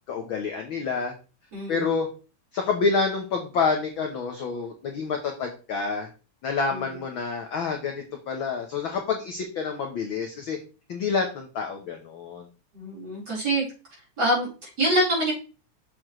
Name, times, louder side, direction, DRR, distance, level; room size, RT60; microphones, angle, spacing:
voice 1, 0.1-1.1 1.7-2.1 2.5-6.1 6.4-10.6 10.9-12.4, left 5 dB, 60° left, 3 dB, 1.4 m, -28 dB
voice 2, 1.5-1.9 6.7-7.0 12.7-13.6 14.2-15.3, right 1 dB, 35° right, -5 dB, 4.8 m, -25 dB
7.6 x 6.9 x 3.1 m, 0.34 s
omnidirectional pair, 3.3 m